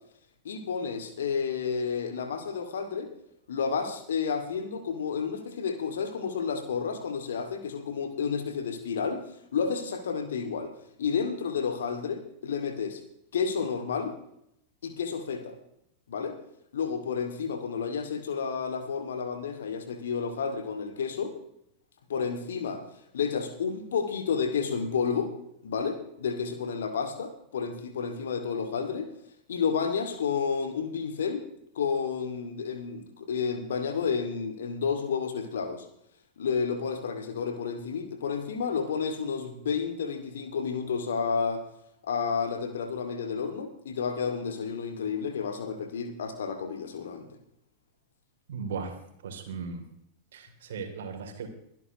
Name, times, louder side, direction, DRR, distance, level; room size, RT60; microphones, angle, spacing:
voice 1, 0.4-3.1 3.5-9.2 9.5-10.7 11.0-13.0 13.3-14.1 14.8-15.6 16.1-16.4 16.7-21.3 22.1-22.8 23.1-25.3 25.6-29.1 29.5-31.4 31.7-35.8 36.4-41.6 42.0-47.4, left 6 dB, 65° left, 7 dB, 2.4 m, -31 dB
voice 2, 48.5-48.9 49.2-49.8 50.3-51.5, right 5 dB, 60° right, 4 dB, 3.2 m, -37 dB
23.5 x 12.0 x 3.1 m, 0.75 s
figure-of-eight pair, 90°, 0 cm